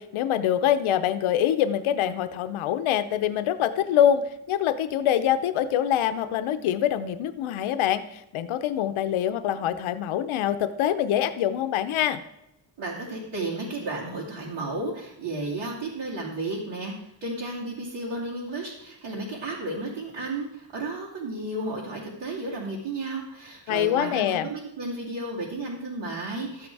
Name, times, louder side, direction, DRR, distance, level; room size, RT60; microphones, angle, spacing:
voice 1, 0.0-12.2 23.7-24.5, left 10 dB, 90° left, 11 dB, 0.8 m, -25 dB
voice 2, 12.8-26.7, right 2 dB, 75° right, -7 dB, 2.8 m, -33 dB
13.0 x 7.9 x 4.7 m, 0.83 s
cardioid pair, 145°, 47 cm